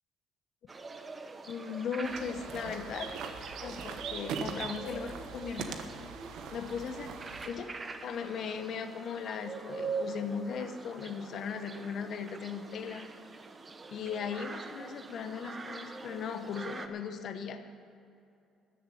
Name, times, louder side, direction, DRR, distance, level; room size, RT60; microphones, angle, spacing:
sound 1, 0.7-16.9, right 4 dB, 25° right, 1.0 m, -44 dB
voice 1, 1.5-3.1 3.6-6.2 6.5-7.2 7.4-7.8 8.0-13.0 13.9-17.6, left 6 dB, 60° left, 8 dB, 1.1 m, -38 dB
sound 2, 2.0-7.5, right 6 dB, 75° right, 1.1 m, -41 dB
14.0 x 7.2 x 9.3 m, 2.5 s
cardioid pair, 105°, 0 cm